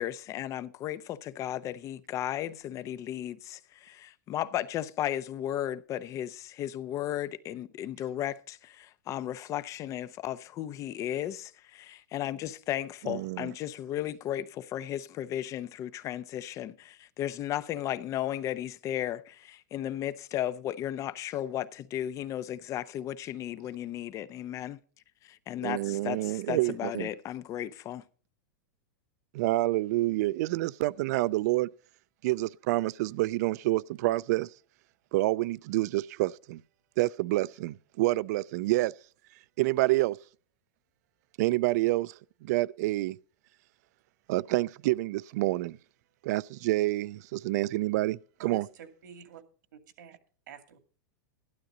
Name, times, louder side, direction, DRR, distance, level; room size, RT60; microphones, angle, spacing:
voice 1, 0.0-24.8 25.2-28.0, left 12 dB, 30° left, 0.7 m, -35 dB
voice 2, 13.1-13.5 25.6-27.1 29.3-31.7 32.2-34.5 35.1-36.6 37.0-38.9 39.6-40.2 41.4-42.1 42.4-43.2 44.3-45.8 46.2-48.6, right 18 dB, 60° right, 0.5 m, -28 dB
voice 3, 48.4-49.4 49.7-50.2 50.5-50.8, right 7 dB, 85° right, 2.4 m, -47 dB
12.5 x 12.0 x 3.9 m
supercardioid pair, 135°, 10 cm